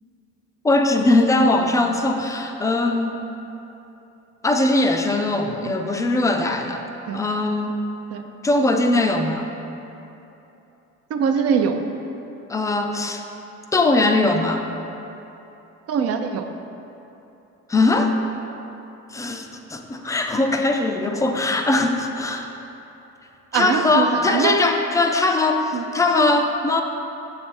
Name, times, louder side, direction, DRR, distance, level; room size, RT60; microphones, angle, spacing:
voice 1, 0.6-3.2 4.4-6.8 7.1-7.8 8.4-9.5 12.5-13.2 13.7-14.7 17.7-18.1 19.1-22.5 23.5-26.8, left 2 dB, 10° left, 4 dB, 0.4 m, -20 dB
voice 2, 11.1-11.8 15.9-16.5 23.5-24.6 25.7-25.8, right 6 dB, 55° right, 6 dB, 0.5 m, -22 dB
6.7 x 3.3 x 4.4 m, 3.0 s
cardioid pair, 100°, 29 cm